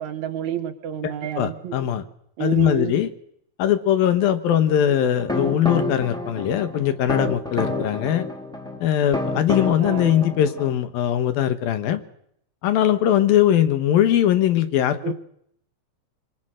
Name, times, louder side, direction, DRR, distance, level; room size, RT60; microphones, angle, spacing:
voice 1, 0.0-1.8 2.4-3.0 9.8-10.2 15.0-15.1, right 10 dB, 60° right, 11 dB, 2.3 m, -29 dB
voice 2, 1.4-2.1 2.4-3.1 3.6-8.3 8.8-12.0 12.6-15.1, left 11 dB, 80° left, 10 dB, 3.3 m, -20 dB
sound 1, 5.2-10.7, left 2 dB, ahead, 2.7 m, -29 dB
27.5 x 24.5 x 6.5 m, 0.71 s
omnidirectional pair, 4.1 m